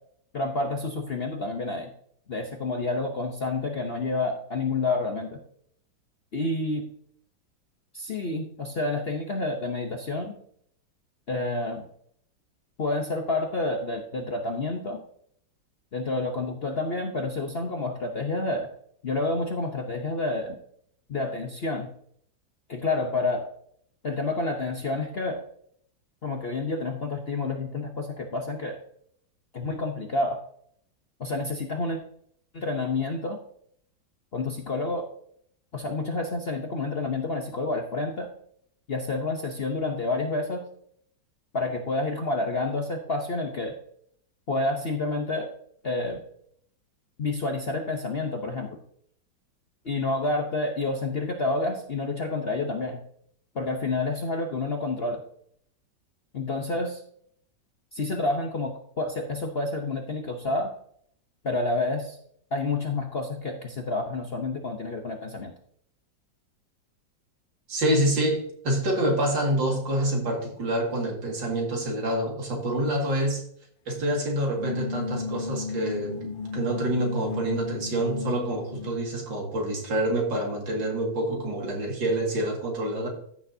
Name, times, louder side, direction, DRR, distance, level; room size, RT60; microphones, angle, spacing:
voice 1, 0.3-1.9 2.3-5.4 6.3-6.9 7.9-10.3 11.3-11.8 12.8-15.0 15.9-18.7 19.0-20.6 21.1-21.9 22.7-23.5 24.0-25.4 26.2-28.8 29.5-30.4 31.2-32.0 32.5-33.4 34.3-35.0 35.7-38.3 38.9-40.6 41.5-43.7 44.5-45.5 45.8-46.2 47.2-48.8 49.8-53.0 53.5-55.2 56.3-57.0 57.9-60.7 61.4-62.2 62.5-65.5, left 2 dB, 45° left, 3 dB, 0.8 m, -29 dB
voice 2, 67.7-73.4 73.9-83.1, right 1 dB, 75° right, 0 dB, 2.8 m, -27 dB
sound 1, 74.4-79.2, left 4 dB, 70° left, 0.5 m, -35 dB
14.5 x 6.5 x 2.7 m, 0.64 s
omnidirectional pair, 2.0 m